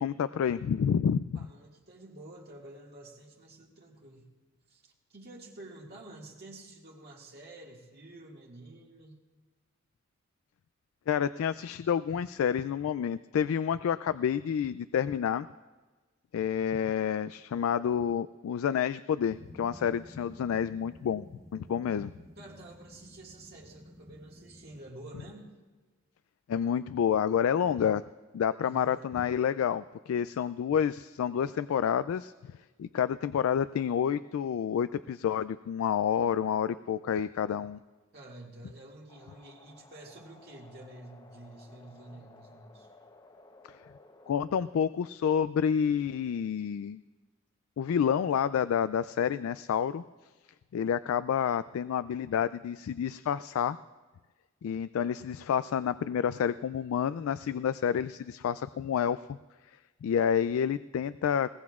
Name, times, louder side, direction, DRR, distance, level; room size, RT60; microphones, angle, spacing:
voice 1, 0.0-1.4 11.1-15.5 16.3-21.3 21.5-22.1 26.5-28.0 28.3-37.8 43.7-43.8 44.3-47.0 47.8-50.0 50.7-53.8 54.6-59.2 60.0-61.6, left 8 dB, 85° left, 14 dB, 0.3 m, -29 dB
voice 2, 1.3-4.3 4.7-9.2 22.4-25.5 28.6-29.1 38.1-42.9, right 2 dB, 50° right, -2 dB, 1.9 m, -49 dB
sound 1, 19.3-24.8, equal, 15° right, 1.2 m, -52 dB
sound 2, 39.1-44.9, left 2 dB, 20° left, 0.8 m, -56 dB
21.0 x 18.0 x 2.4 m, 1.3 s
head